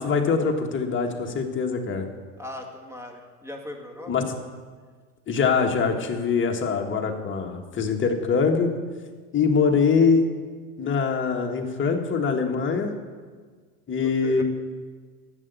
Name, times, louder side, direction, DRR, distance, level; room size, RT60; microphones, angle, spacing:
voice 1, 0.0-2.0 4.1-4.3 5.3-8.7 9.3-10.3 10.8-12.9 13.9-14.4, left 5 dB, 25° left, 2 dB, 1.6 m, -23 dB
voice 2, 2.4-4.1 14.0-14.4, left 1 dB, 5° right, 2 dB, 2.0 m, -39 dB
11.0 x 8.3 x 8.1 m, 1.5 s
hypercardioid pair, 100°, 47 cm